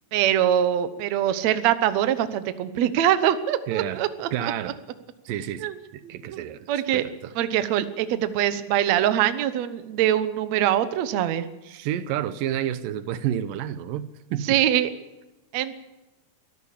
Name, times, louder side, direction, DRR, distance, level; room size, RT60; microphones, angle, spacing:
voice 1, 0.1-4.3 5.6-5.8 6.3-7.1 7.4-11.5 14.5-14.9 15.5-15.7, right 11 dB, 65° right, 2.0 m, -23 dB
voice 2, 3.7-4.8 5.3-5.7 5.9-7.3 11.7-14.6, right 11 dB, 85° right, 2.5 m, -30 dB
23.0 x 13.5 x 8.5 m
omnidirectional pair, 3.9 m